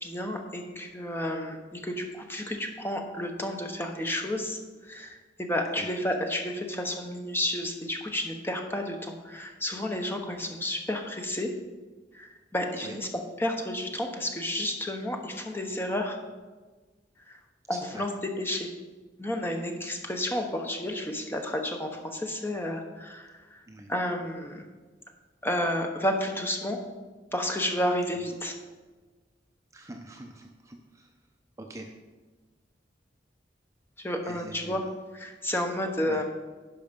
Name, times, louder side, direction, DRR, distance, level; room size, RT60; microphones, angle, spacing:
voice 1, 0.0-11.5 12.1-13.1 13.4-16.2 17.3-17.4 17.7-18.1 18.4-18.7 19.2-23.6 23.9-24.6 25.4-26.8 27.3-28.5 34.0-34.8 35.1-36.2, left 1 dB, 15° left, 3 dB, 0.9 m, -31 dB
voice 2, 17.7-18.0 23.7-23.9 28.1-28.4 29.7-31.1 31.6-31.9 34.2-34.9 36.0-36.2, right 1 dB, 15° right, 2 dB, 0.6 m, -44 dB
11.0 x 5.7 x 5.2 m, 1.3 s
head